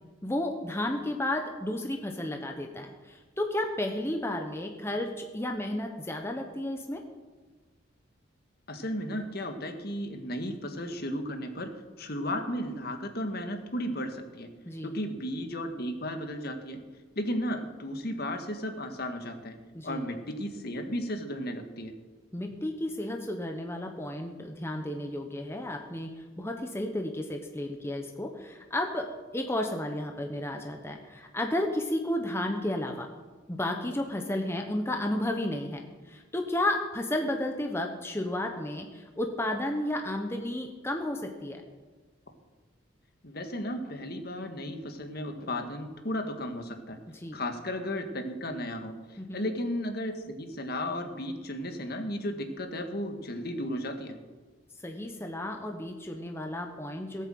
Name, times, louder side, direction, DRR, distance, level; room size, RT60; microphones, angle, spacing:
voice 1, 0.2-7.0 14.6-14.9 19.7-20.1 22.3-26.1 26.4-29.1 29.3-33.1 33.5-41.6 47.1-47.4 49.2-49.4 54.8-57.3, left 1 dB, 15° left, 3 dB, 1.0 m, -32 dB
voice 2, 8.7-11.7 12.0-14.5 14.8-16.8 17.2-19.6 19.8-21.9 43.2-47.0 47.3-54.2, left 1 dB, 55° left, 6 dB, 1.7 m, -34 dB
18.0 x 8.4 x 7.8 m, 1.3 s
head